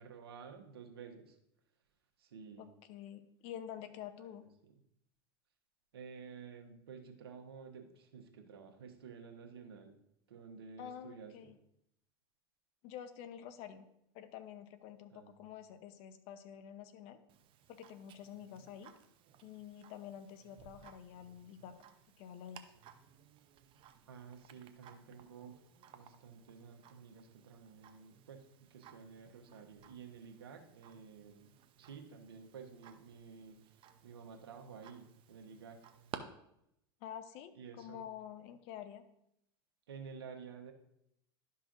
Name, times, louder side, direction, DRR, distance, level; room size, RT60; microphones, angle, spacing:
voice 1, 0.0-1.4 2.2-2.7 4.2-4.4 5.9-10.0 10.3-11.6 15.1-15.5 24.1-25.6 25.9-31.5 31.8-35.8 37.5-38.0 39.9-40.7, right 6 dB, 80° right, 4 dB, 1.3 m, -52 dB
voice 2, 2.6-4.5 10.8-11.6 12.8-13.9 14.1-17.2 17.7-18.9 19.4-21.7 22.2-22.7 37.0-39.0, left 9 dB, 55° left, 10 dB, 0.9 m, -48 dB
Tick-tock, 17.3-36.2, right 10 dB, 45° right, 0.8 m, -57 dB
12.0 x 5.6 x 2.6 m, 0.78 s
hypercardioid pair, 95°, 13 cm